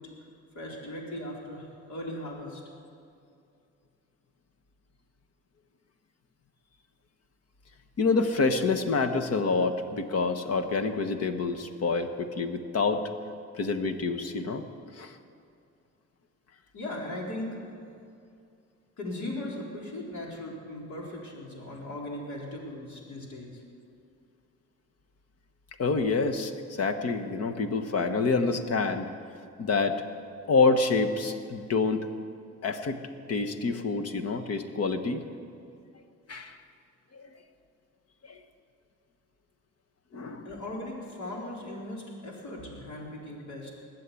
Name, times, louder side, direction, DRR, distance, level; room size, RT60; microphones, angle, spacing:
voice 1, 0.5-2.6 16.7-17.6 19.0-23.6 40.4-43.7, left 1 dB, 70° left, -2 dB, 4.2 m, -38 dB
voice 2, 8.0-12.1 12.4-13.0 13.6-14.6 15.0-15.2 25.8-29.1 29.6-30.0 30.5-32.1 32.6-33.0 33.3-35.2 36.3-36.6 37.1-37.2 38.3-38.4 40.1-40.5, left 4 dB, 55° left, 8 dB, 1.3 m, -27 dB
20.5 x 7.6 x 8.4 m, 2.5 s
cardioid pair, 90°, 30 cm